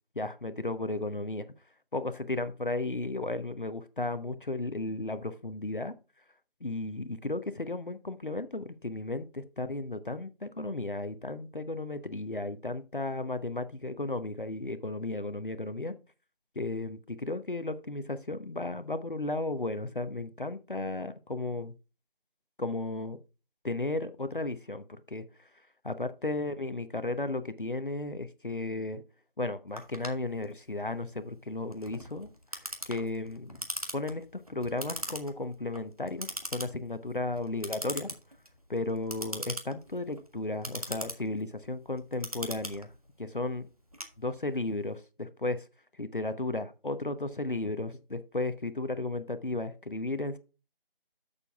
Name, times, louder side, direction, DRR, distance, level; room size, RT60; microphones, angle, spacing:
voice 1, 0.1-1.4 1.9-5.9 6.6-15.9 16.6-21.7 22.6-23.2 23.6-25.5 25.8-29.0 29.4-33.6 33.9-38.1 38.7-42.9 43.2-43.7 44.2-45.6 46.0-50.4, left 2 dB, 60° left, 0.9 m, -34 dB
Clock, 29.8-44.7, equal, 40° right, 1.4 m, -41 dB
12.5 x 6.8 x 2.3 m
figure-of-eight pair, 180°, 29 cm